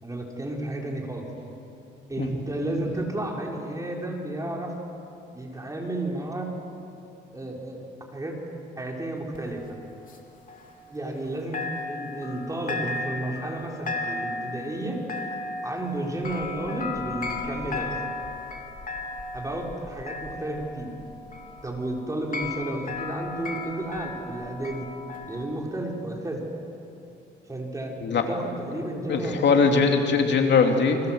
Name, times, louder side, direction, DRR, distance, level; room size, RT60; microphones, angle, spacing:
voice 1, 0.0-1.2 2.1-4.7 5.3-6.5 7.3-7.8 8.1-8.4 8.8-9.6 10.9-15.0 15.6-18.0 19.3-20.9 21.6-24.9 25.3-26.4 27.5-29.6, right 1 dB, 15° right, -1 dB, 6.0 m, -32 dB
sound 1, 9.3-11.3 11.5-25.4, left 3 dB, 45° left, 3.3 m, -35 dB
voice 2, 28.8-31.0, left 5 dB, 60° left, 3 dB, 2.9 m, -21 dB
30.0 x 24.5 x 8.1 m, 2.8 s
cardioid pair, 90°, 20 cm